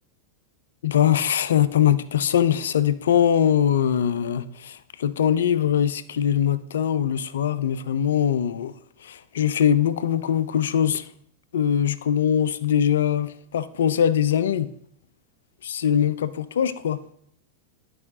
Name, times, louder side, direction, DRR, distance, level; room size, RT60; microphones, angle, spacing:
voice 1, 0.8-8.7 9.0-11.1 11.5-14.7 15.6-17.0, left 9 dB, 60° left, 0.4 m, -22 dB
12.5 x 4.8 x 2.8 m
figure-of-eight pair, 90°, 0 cm